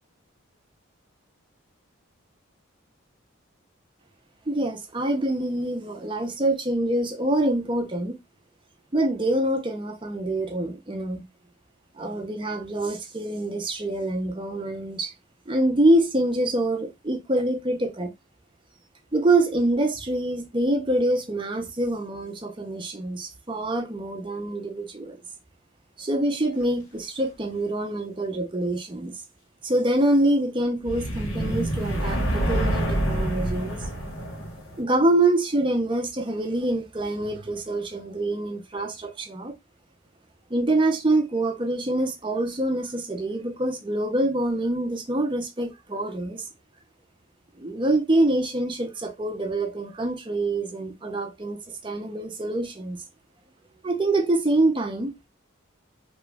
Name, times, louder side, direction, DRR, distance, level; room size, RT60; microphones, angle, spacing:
voice 1, 4.5-8.2 8.9-11.2 12.0-15.1 15.5-18.1 19.1-25.2 26.0-29.1 29.6-33.8 34.8-39.5 40.5-46.4 47.6-53.0 53.8-55.1, right 1 dB, 25° right, 0.6 m, -25 dB
sound 1, 30.8-34.8, right 1 dB, 80° left, 1.4 m, -27 dB
3.0 x 2.3 x 3.3 m
head